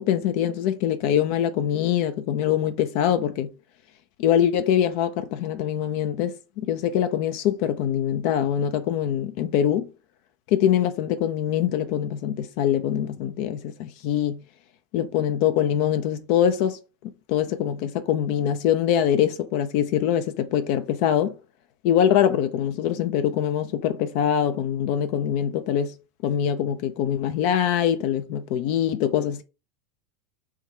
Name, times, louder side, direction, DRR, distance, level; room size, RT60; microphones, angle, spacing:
voice 1, 0.0-3.5 4.2-9.9 10.5-14.4 14.9-16.8 17.3-21.4 21.8-25.9 26.2-29.4, left 10 dB, 55° left, 0.4 m, -23 dB
3.5 x 2.3 x 4.1 m
figure-of-eight pair, 80°, 0 cm